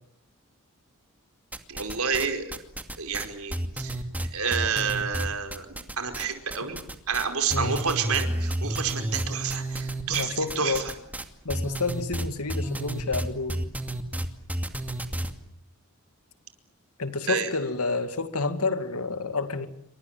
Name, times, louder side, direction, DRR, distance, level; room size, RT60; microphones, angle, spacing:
sound 1, 1.5-2.3 2.5-6.2 6.5-7.2 7.5-15.3, right 1 dB, 5° right, 2.4 m, -31 dB
voice 1, 1.7-2.5 3.0-3.5 3.8-3.9 4.3-5.7 6.0-6.8 7.1-10.8 17.3-17.5, right 6 dB, 70° right, 6 dB, 4.9 m, -29 dB
voice 2, 10.1-10.9 11.4-13.6 17.0-19.7, left 3 dB, 85° left, 9 dB, 2.5 m, -29 dB
29.0 x 25.0 x 7.4 m, 0.73 s
head